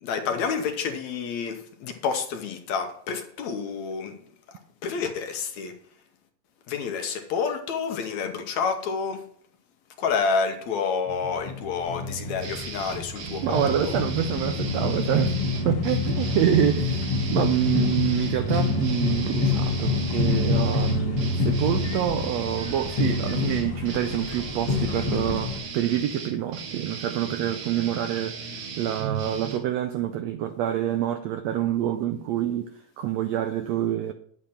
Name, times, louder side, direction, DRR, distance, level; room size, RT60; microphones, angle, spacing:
voice 1, 0.0-4.2 4.8-5.7 6.7-9.2 10.0-13.9, left 5 dB, 70° left, 2.0 m, -29 dB
sound 1, 11.1-25.6, left 3 dB, 50° left, 2.3 m, -27 dB
sound 2, 12.4-29.6, right 5 dB, 70° right, 2.8 m, -37 dB
voice 2, 13.4-15.4 15.6-28.4 28.8-32.7 33.0-34.1, right 10 dB, 85° right, 1.5 m, -26 dB
10.0 x 8.5 x 4.3 m
omnidirectional pair, 3.8 m